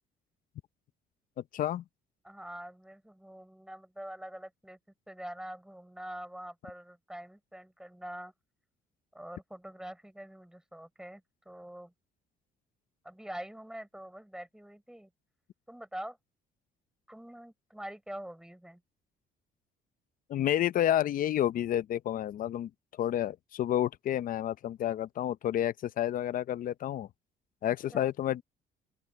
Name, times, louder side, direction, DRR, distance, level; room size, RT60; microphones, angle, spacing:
voice 1, 1.5-1.8 20.3-22.7 23.0-27.1 27.6-28.4, left 11 dB, 55° left, 0.7 m, -30 dB
voice 2, 2.2-4.8 5.1-8.3 9.1-11.9 13.0-15.1 15.7-16.2 17.1-18.8 27.6-28.1, right 1 dB, 5° right, 5.8 m, -45 dB
open air
cardioid pair, 110°, 17 cm